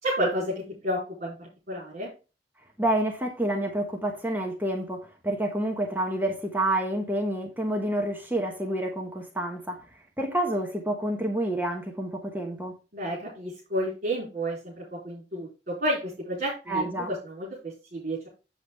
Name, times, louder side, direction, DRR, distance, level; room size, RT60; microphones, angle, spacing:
voice 1, 0.0-2.1 12.9-18.3, right 1 dB, 50° right, 4.4 m, -31 dB
voice 2, 2.8-9.8 10.2-12.7 16.7-17.1, right 1 dB, 10° right, 1.2 m, -28 dB
7.9 x 7.2 x 3.5 m
head